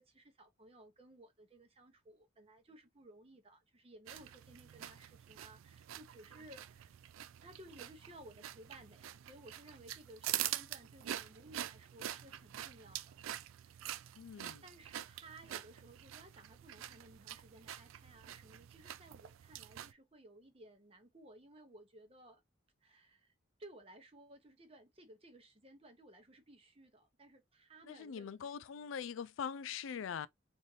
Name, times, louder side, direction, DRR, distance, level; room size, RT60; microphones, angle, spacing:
voice 1, 0.0-6.9 7.4-13.2 13.6-14.2 14.6-22.4 22.8-23.3 23.6-28.5, right 1 dB, 30° right, 0.8 m, -58 dB
sound 1, 4.1-19.9, right 12 dB, 90° right, 0.3 m, -45 dB
voice 2, 14.2-14.6 27.8-30.3, left 7 dB, 80° left, 0.4 m, -42 dB
4.1 x 2.6 x 3.2 m
head